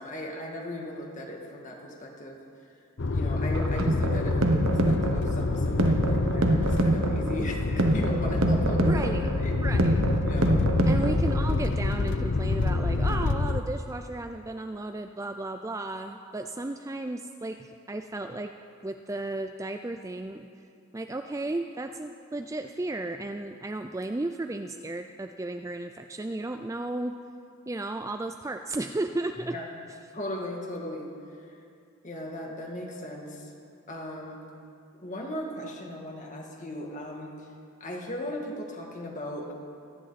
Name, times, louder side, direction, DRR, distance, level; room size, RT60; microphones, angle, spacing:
voice 1, 0.0-2.4 3.1-9.0 9.4-9.5 10.3-10.6 29.5-29.6 30.1-31.1 32.0-33.5 33.9-34.4 35.0-37.4 37.8-39.5, left 1 dB, 35° left, 0 dB, 2.0 m, -37 dB
sound 1, 3.0-13.6, left 3 dB, 55° left, 0.7 m, -27 dB
sound 2, 3.5-11.5, right 1 dB, 65° right, 1.1 m, -26 dB
voice 2, 8.8-9.3 9.5-10.1 10.9-18.6 18.8-20.5 20.9-27.2 27.7-29.6 29.9-30.0, right 2 dB, 15° right, 6 dB, 0.3 m, -34 dB
26.0 x 10.5 x 4.2 m, 2.4 s
head